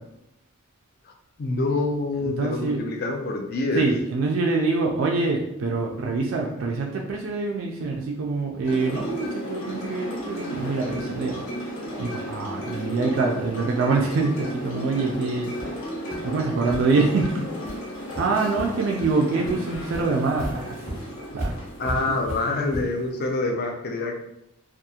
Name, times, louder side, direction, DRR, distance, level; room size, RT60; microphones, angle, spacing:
voice 1, 1.4-3.8 21.8-24.2, left 2 dB, 45° left, 3 dB, 0.4 m, -26 dB
voice 2, 2.2-2.8 3.8-11.4 12.0-15.5 16.2-17.5 18.1-21.0 21.3-21.6, right 3 dB, 65° right, 0 dB, 0.3 m, -25 dB
sound 1, 8.6-23.4, equal, 65° left, 0.8 m, -34 dB
sound 2, 15.1-15.2 15.6-15.8 16.1-16.2 16.7-16.8 17.2-17.3 17.6-17.8 18.1-18.7 19.0-19.1 19.4-23.1, right 1 dB, 30° left, 0.9 m, -35 dB
2.8 x 2.3 x 2.3 m, 0.80 s
head